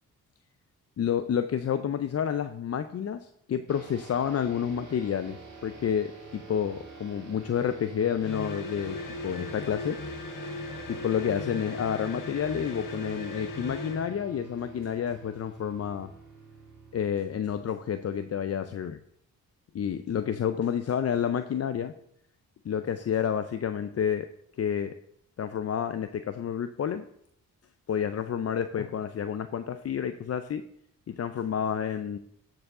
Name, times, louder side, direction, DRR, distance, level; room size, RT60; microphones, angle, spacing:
voice 1, 1.0-9.0 9.2-10.0 10.5-10.6 10.9-16.1 16.9-19.0 19.7-21.9 22.6-24.3 24.6-24.9 25.4-27.1 27.9-30.6 31.1-32.2, left 8 dB, 45° left, 10 dB, 0.5 m, -29 dB
sound 1, 3.7-18.5, right 4 dB, 55° right, 2.0 m, -47 dB
sound 2, 8.2-14.1, left 2 dB, 65° left, 1.3 m, -38 dB
13.5 x 4.8 x 3.7 m, 0.72 s
supercardioid pair, 50°, 35 cm